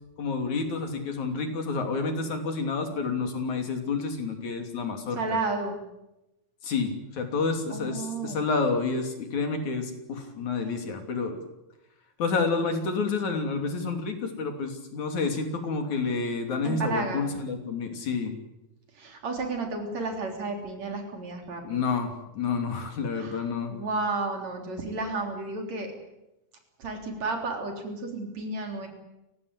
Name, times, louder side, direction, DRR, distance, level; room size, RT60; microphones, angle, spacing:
voice 1, 0.2-5.4 6.6-11.4 12.2-18.3 21.6-23.8, left 4 dB, 70° left, 5 dB, 4.3 m, -29 dB
voice 2, 5.2-5.8 7.7-8.4 16.6-17.3 18.9-21.8 23.2-23.4 23.7-25.9 26.8-28.9, right 3 dB, 60° right, 3 dB, 4.9 m, -32 dB
29.5 x 16.5 x 8.2 m, 0.93 s
omnidirectional pair, 3.5 m